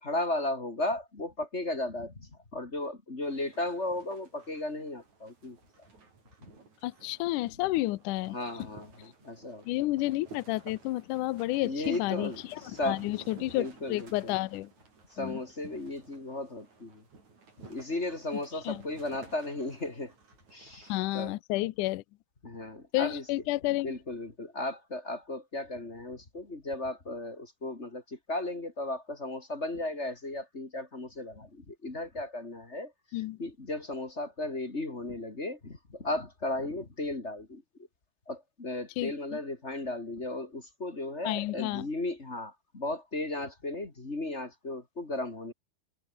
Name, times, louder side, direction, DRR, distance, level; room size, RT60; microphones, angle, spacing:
voice 1, 0.0-5.6 8.3-9.7 11.6-13.0 13.5-14.3 15.1-17.0 17.7-20.1 20.5-21.4 22.4-23.2 23.8-32.9 33.4-37.6 38.3-45.5, left 2 dB, 20° left, 2.2 m, -35 dB
sound 1, 3.2-21.3, right 4 dB, 45° right, 7.0 m, -54 dB
voice 2, 6.8-8.4 9.7-14.7 15.2-15.4 18.7-18.8 20.9-22.0 22.9-23.9 33.1-33.4 39.0-39.1 41.2-41.9, left 18 dB, 80° left, 1.8 m, -31 dB
omnidirectional pair, 4.7 m